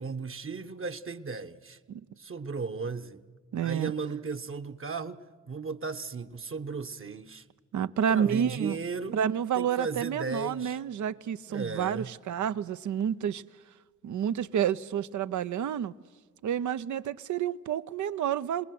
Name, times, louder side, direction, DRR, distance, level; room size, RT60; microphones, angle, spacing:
voice 1, 0.0-1.8 2.2-3.2 3.6-5.2 5.5-7.4 8.1-9.2 9.5-10.8 11.5-12.1, right 4 dB, 40° right, 1.3 m, -35 dB
voice 2, 3.5-3.9 7.7-8.8 9.1-13.4 14.0-15.9 16.4-18.6, right 9 dB, 60° right, 0.8 m, -29 dB
26.5 x 20.0 x 7.9 m
supercardioid pair, 50°, 33 cm